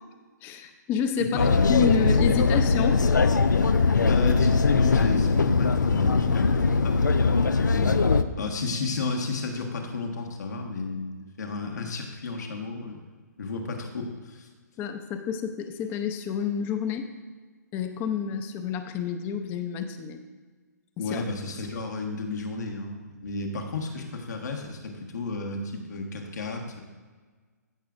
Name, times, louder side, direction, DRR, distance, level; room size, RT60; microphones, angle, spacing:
voice 1, 0.4-3.0 14.8-17.1 17.7-20.2 21.0-21.2, left 6 dB, 20° left, 8 dB, 0.6 m, -29 dB
voice 2, 1.2-1.5 4.0-7.2 7.5-8.0 8.4-13.0 13.4-14.5 21.0-26.8, left 3 dB, 70° left, 1 dB, 1.5 m, -32 dB
sound 1, 1.4-8.2, left 4 dB, 85° left, 0.5 m, -21 dB
15.5 x 6.0 x 2.5 m, 1.4 s
hypercardioid pair, 140°, 10 cm